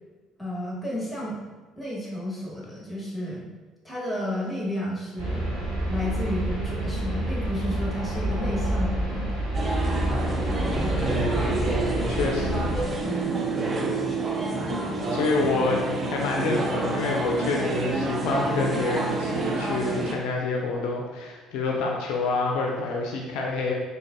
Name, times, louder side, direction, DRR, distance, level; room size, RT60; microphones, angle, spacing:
voice 1, 0.4-1.4 1.8-3.4 3.8-5.5 5.9-9.4 10.6-11.0 13.0-13.4, left 1 dB, 10° left, -5 dB, 1.2 m, -32 dB
sound 1, 5.2-12.9, right 1 dB, 70° right, 0.8 m, -28 dB
sound 2, 9.5-20.1, right 2 dB, 35° right, 0.5 m, -28 dB
voice 2, 10.9-11.6 12.1-12.7 15.1-23.7, left 3 dB, 65° left, -1 dB, 0.3 m, -27 dB
3.7 x 2.8 x 2.5 m, 1.3 s
figure-of-eight pair, 55°, 0 cm